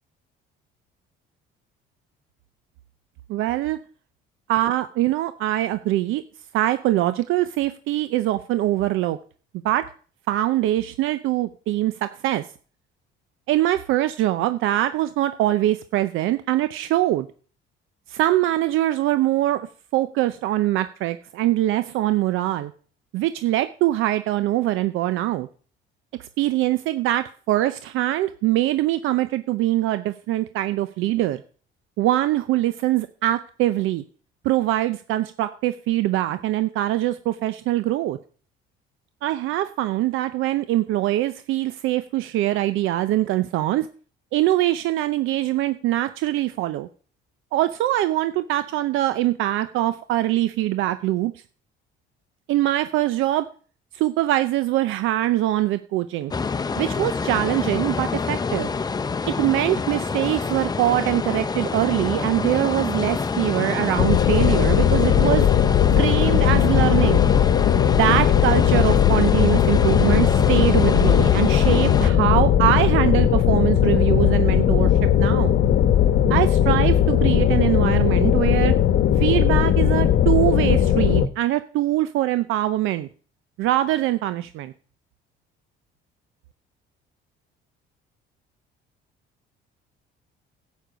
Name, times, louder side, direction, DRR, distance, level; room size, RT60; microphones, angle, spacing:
voice 1, 3.3-3.8 4.5-6.2 6.5-9.2 9.6-9.9 10.3-12.4 13.5-17.3 18.1-19.7 19.9-22.7 23.1-25.5 26.2-31.4 32.0-34.0 34.4-38.2 39.2-43.9 44.3-46.9 47.5-51.3 52.5-53.5 53.9-56.3 56.8-58.7 59.3-65.5 65.9-67.3 68.0-75.5 76.3-78.7 79.2-83.1 83.6-84.7, right 14 dB, 75° right, 12 dB, 0.6 m, -23 dB
sound 1, 56.3-72.1, left 4 dB, 20° left, 0.6 m, -26 dB
sound 2, 64.0-81.3, left 10 dB, 65° left, 1.0 m, -18 dB
11.5 x 8.4 x 5.1 m, 0.42 s
cardioid pair, 110°, 21 cm